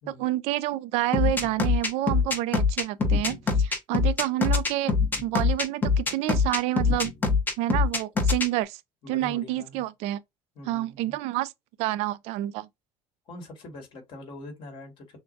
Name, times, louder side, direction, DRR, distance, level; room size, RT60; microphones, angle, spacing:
voice 1, 0.2-4.9 5.2-7.1 7.6-8.8 9.1-10.2 10.7-11.5 11.8-12.7, right 15 dB, 75° right, 0.5 m, -28 dB
sound 1, 1.1-8.5, left 4 dB, 15° left, 0.9 m, -23 dB
voice 2, 9.0-9.9 10.6-11.2 13.3-15.2, left 2 dB, 50° left, 2.1 m, -43 dB
6.4 x 2.2 x 2.7 m
cardioid pair, 150°, 11 cm